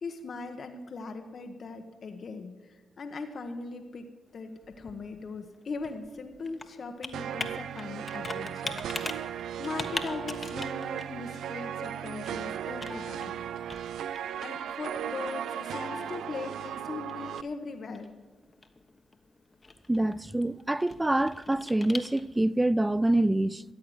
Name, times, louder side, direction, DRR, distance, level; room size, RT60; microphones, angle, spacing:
voice 1, 0.0-9.3 9.6-13.4 14.4-18.1, left 4 dB, 60° left, 1.1 m, -40 dB
Computer keyboard, 4.3-22.6, left 3 dB, 35° left, 1.3 m, -43 dB
sound 1, 7.1-17.4, right 9 dB, 80° right, 0.4 m, -36 dB
voice 2, 19.9-23.6, right 1 dB, 15° right, 0.4 m, -26 dB
14.0 x 8.4 x 7.9 m
supercardioid pair, 55°, 0 cm